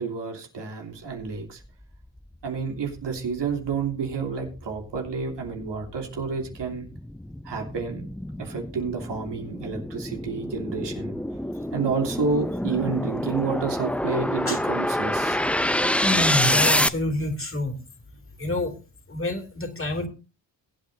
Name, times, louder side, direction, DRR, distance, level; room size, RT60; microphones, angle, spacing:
voice 1, 0.0-1.6 2.4-6.9 7.4-8.1 8.4-11.1 11.7-15.4, right 5 dB, 80° right, 2 dB, 3.1 m, -29 dB
sound 1, 2.2-2.3 2.8-16.9, left 1 dB, 5° left, 0.5 m, -27 dB
voice 2, 16.0-17.8 18.4-18.7 19.1-20.1, left 1 dB, 30° left, 3 dB, 2.8 m, -27 dB
22.0 x 8.6 x 2.7 m, 0.31 s
cardioid pair, 70°, 42 cm